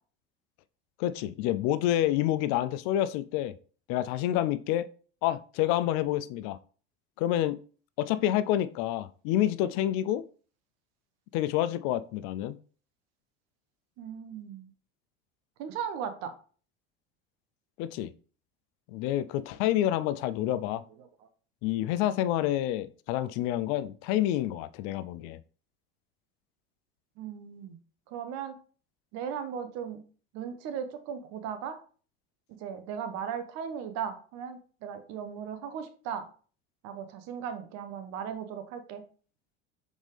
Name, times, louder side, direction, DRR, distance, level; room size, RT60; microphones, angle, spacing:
voice 1, 1.0-3.5 3.9-4.9 5.2-6.6 7.2-7.6 8.0-10.2 11.3-12.6 17.8-18.1 18.9-20.8 21.6-25.4, left 13 dB, 65° left, 0.5 m, -28 dB
voice 2, 14.0-14.7 15.6-16.3 21.0-21.1 27.2-27.8 28.1-28.6 29.1-30.0 30.3-31.8 32.6-36.3 36.8-39.0, right 8 dB, 60° right, 0.9 m, -37 dB
4.1 x 3.6 x 3.3 m
hypercardioid pair, 80°, 30 cm